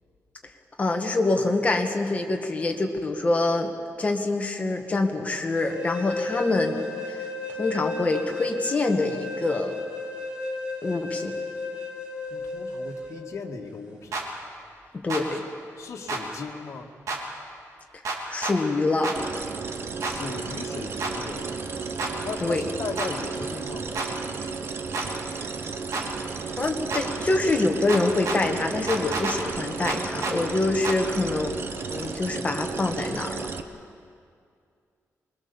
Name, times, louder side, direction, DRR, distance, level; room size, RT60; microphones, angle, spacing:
voice 1, 0.8-6.8 7.1-7.3 7.6-9.8 10.8-11.4 14.9-15.4 17.9-18.0 18.3-19.1 22.4-22.6 26.6-31.5 31.9-33.5, left 2 dB, 25° left, 3 dB, 1.8 m, -25 dB
sound 1, 5.6-13.2, left 3 dB, 15° right, 3.2 m, -33 dB
voice 2, 12.3-14.2 15.3-15.4 15.8-16.9 20.0-21.5 22.2-24.0, left 4 dB, 60° left, -1 dB, 2.0 m, -37 dB
sound 2, 14.1-14.3 15.1-15.2 16.1-16.2 17.1-17.2 18.1-18.6 19.0-19.2 20.0-20.2 21.0-21.1 22.0-22.1 23.0-23.1 24.0-24.1 24.9-25.1 25.9-26.1 26.9-27.0 27.9-28.4 28.9-29.4 29.9-30.4 30.8-31.0, right 3 dB, 80° right, 3.4 m, -29 dB
sound 3, 19.1-33.6, right 5 dB, 45° right, 1.1 m, -33 dB
24.5 x 22.0 x 7.1 m, 2.3 s
wide cardioid pair, 165°, 5 cm